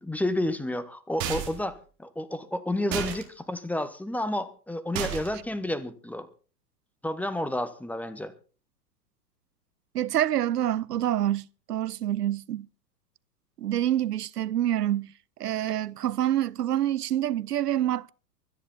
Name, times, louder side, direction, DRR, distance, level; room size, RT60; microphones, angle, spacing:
voice 1, 0.0-6.3 7.0-8.3, left 1 dB, 5° left, 1.1 m, -30 dB
sound 1, 1.2-1.7 2.9-3.2 4.9-5.4, right 9 dB, 35° right, 3.4 m, -32 dB
voice 2, 9.9-12.7 13.6-15.1 15.4-18.1, right 12 dB, 75° right, 0.6 m, -27 dB
24.0 x 10.0 x 4.0 m
figure-of-eight pair, 100°, 48 cm